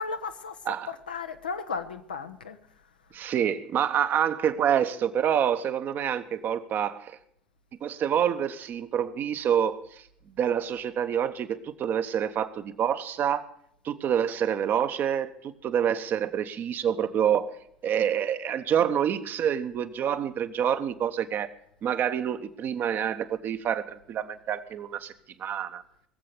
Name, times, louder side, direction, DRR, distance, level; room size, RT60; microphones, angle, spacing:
voice 1, 0.0-0.6 0.9-2.6, left 5 dB, 80° left, 0.9 m, -34 dB
voice 2, 3.1-7.2 7.8-10.1 10.4-13.4 13.8-17.5 17.8-21.5 21.8-25.1 25.4-25.8, right 9 dB, 45° right, 1.0 m, -27 dB
20.0 x 7.6 x 6.8 m
figure-of-eight pair, 65°, 5 cm